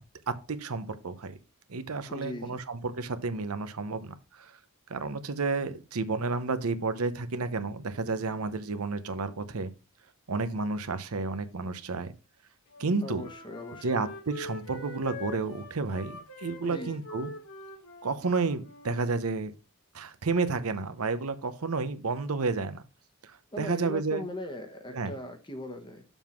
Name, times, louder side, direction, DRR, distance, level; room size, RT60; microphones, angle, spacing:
voice 1, 0.3-1.4 1.7-4.6 4.9-9.7 10.3-12.1 12.8-13.2 13.8-17.3 18.0-19.5 19.9-22.8 23.2-24.2 24.9-25.1, right 3 dB, 80° right, 11 dB, 0.8 m, -31 dB
voice 2, 2.1-2.6 13.0-14.0 16.6-16.9 23.5-26.0, left 1 dB, 20° left, 6 dB, 1.1 m, -39 dB
Wind instrument woodwind instrument, 12.7-19.1, left 2 dB, 85° left, 2.2 m, -44 dB
7.1 x 3.6 x 6.0 m, 0.31 s
head